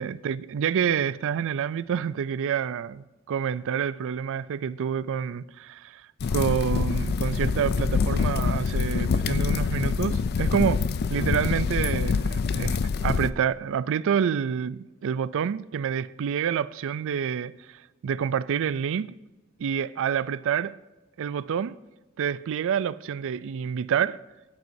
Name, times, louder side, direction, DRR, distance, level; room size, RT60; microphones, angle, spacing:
voice 1, 0.0-10.8 11.1-19.1 19.6-20.8 21.2-21.8 22.2-24.2, right 8 dB, 65° right, 0.4 m, -28 dB
sound 1, 6.2-13.3, left 5 dB, 45° left, 0.4 m, -25 dB
16.5 x 9.4 x 2.7 m
head